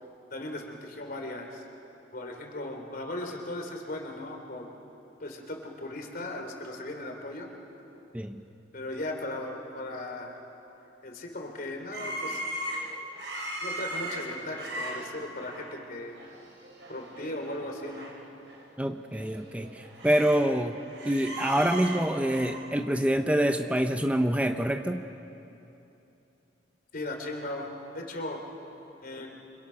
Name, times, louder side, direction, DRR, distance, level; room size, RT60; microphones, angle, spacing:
voice 1, 0.3-1.6 2.1-4.7 5.2-7.5 8.7-10.4 11.0-12.4 13.6-16.2 16.9-18.1 26.9-27.7 27.9-28.4 29.0-29.3, left 1 dB, 55° left, 3 dB, 3.3 m, -37 dB
sound 1, 11.9-15.8 16.2-16.4 16.6-18.1 18.5-18.6 19.1-20.5 20.8-22.5, right 1 dB, 90° right, 4.5 m, -38 dB
voice 2, 18.8-20.8 21.0-25.0, right 1 dB, 10° right, 6 dB, 0.7 m, -26 dB
29.5 x 25.5 x 5.8 m, 2.9 s
head